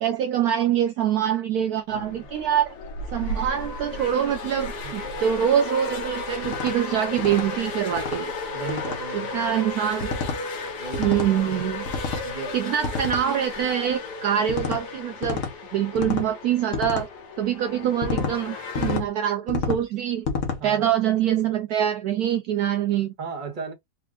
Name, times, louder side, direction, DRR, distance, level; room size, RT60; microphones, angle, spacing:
voice 1, 0.0-2.7 3.1-8.3 9.1-10.1 11.0-11.9 12.5-15.4 15.7-17.1 17.4-20.3 20.6-23.1, right 10 dB, 70° right, 1.0 m, -24 dB
sound 1, 1.9-19.0, left 3 dB, 70° left, 1.8 m, -34 dB
voice 2, 1.9-2.3 4.8-5.2 8.5-9.4 10.8-11.5 12.2-12.6 16.0-16.2 20.6-20.9 23.2-23.7, right 4 dB, 30° right, 1.3 m, -36 dB
sound 2, 6.4-6.7 7.2-7.5 7.9-8.2 8.7-9.0 10.0-10.4 10.9-11.3 11.9-12.3 12.8-13.3 14.5-14.8 15.2-15.5 16.0-16.3 16.7-17.1 18.0-18.3 18.8-19.1 19.5-19.8 20.3-20.6, left 5 dB, 50° left, 1.2 m, -29 dB
4.5 x 2.5 x 3.5 m
omnidirectional pair, 1.8 m